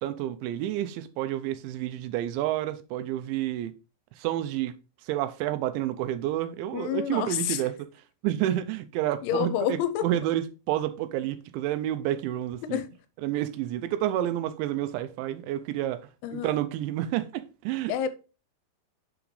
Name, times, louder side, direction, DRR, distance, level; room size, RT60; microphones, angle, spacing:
voice 1, 0.0-3.7 4.2-4.8 5.1-7.9 8.2-12.8 13.2-16.0 16.3-17.9, right 13 dB, 85° right, 2.9 m, -29 dB
voice 2, 6.7-7.6 9.2-10.1 12.6-13.0 16.2-16.6 17.9-18.1, left 10 dB, 90° left, 3.0 m, -29 dB
7.0 x 5.8 x 3.1 m
omnidirectional pair, 5.3 m